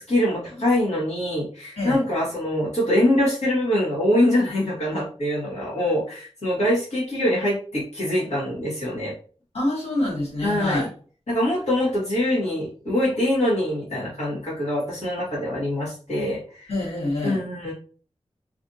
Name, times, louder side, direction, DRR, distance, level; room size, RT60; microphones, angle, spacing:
voice 1, 0.0-9.1 10.4-10.8 11.3-16.7 17.2-17.7, left 1 dB, 90° left, -8 dB, 1.6 m, -24 dB
voice 2, 9.5-10.9 16.7-17.4, left 1 dB, 65° left, -5 dB, 1.6 m, -26 dB
3.2 x 2.6 x 2.7 m, 0.41 s
wide cardioid pair, 75°, 11 cm